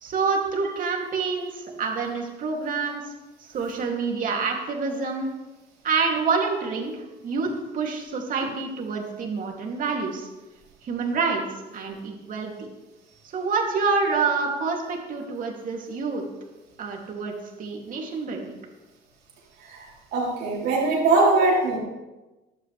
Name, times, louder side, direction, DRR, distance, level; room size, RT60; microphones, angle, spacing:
voice 1, 0.0-3.0 3.5-5.3 5.8-6.9 7.2-10.3 10.8-11.4 11.7-12.5 13.3-16.2 16.8-18.6, right 4 dB, 50° right, 1 dB, 2.6 m, -27 dB
voice 2, 20.1-21.8, right 3 dB, 75° right, -4 dB, 3.5 m, -21 dB
14.0 x 11.5 x 3.3 m, 1.1 s
cardioid pair, 110°, 17 cm